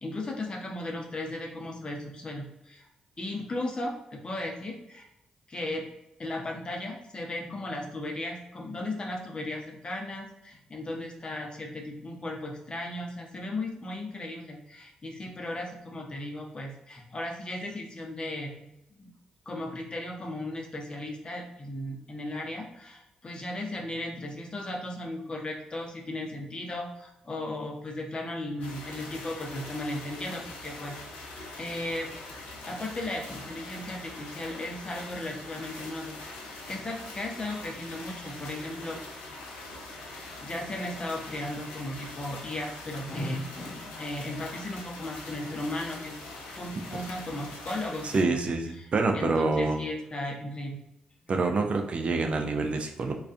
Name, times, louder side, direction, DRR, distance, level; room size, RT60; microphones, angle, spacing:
voice 1, 0.0-2.9 3.2-5.1 5.5-5.8 6.2-18.7 19.0-19.1 19.5-31.3 31.6-32.1 32.7-36.2 36.4-39.0 40.1-46.2 46.5-48.4 48.8-48.9 49.1-50.8, left 1 dB, 35° left, 1 dB, 0.7 m, -36 dB
sound 1, 28.6-48.2, left 2 dB, 80° left, 0.4 m, -43 dB
voice 2, 48.1-49.8 51.3-53.1, right 3 dB, 45° right, 3 dB, 0.4 m, -26 dB
2.3 x 2.2 x 2.5 m, 0.86 s
hypercardioid pair, 40°, 3 cm